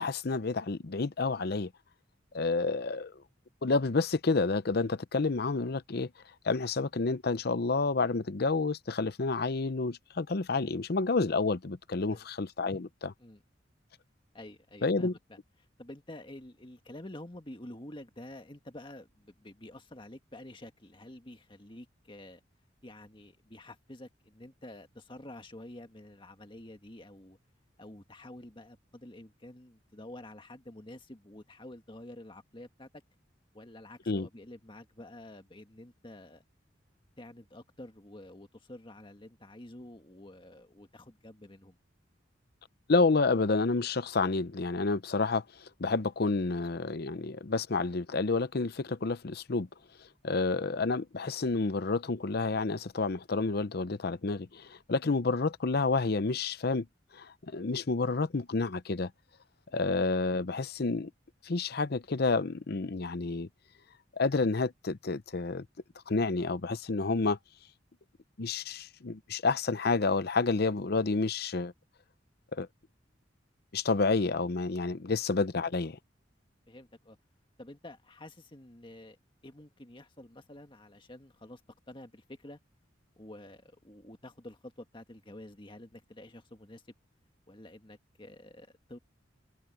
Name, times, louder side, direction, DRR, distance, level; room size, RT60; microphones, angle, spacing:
voice 1, 0.0-1.7 2.3-3.1 3.6-6.1 6.4-13.1 14.8-15.1 34.1-34.3 42.9-49.7 50.2-56.9 57.1-59.1 59.7-61.1 61.4-63.5 64.1-65.7 66.1-67.4 68.4-71.7 72.5-72.7 73.7-76.0, left 3 dB, 55° left, 0.7 m, -29 dB
voice 2, 14.3-15.4 15.8-22.4 22.8-27.4 27.8-32.9 33.5-36.4 37.2-41.8 59.7-59.8 74.9-75.1 76.7-77.2 77.6-79.2 79.4-81.6 81.9-82.6 83.2-86.8 87.5-89.0, left 1 dB, 25° left, 1.8 m, -49 dB
head